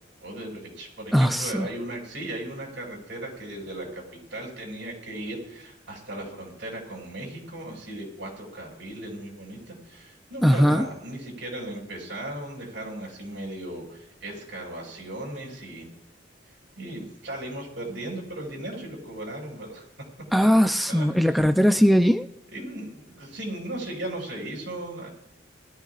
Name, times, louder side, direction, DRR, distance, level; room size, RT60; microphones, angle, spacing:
voice 1, 0.2-15.9 16.8-19.8 20.9-21.3 22.5-25.1, right 1 dB, 85° right, -1 dB, 6.7 m, -37 dB
voice 2, 1.1-1.7 10.4-10.9 20.3-22.3, equal, ahead, 7 dB, 0.5 m, -19 dB
23.0 x 13.5 x 2.5 m, 0.79 s
head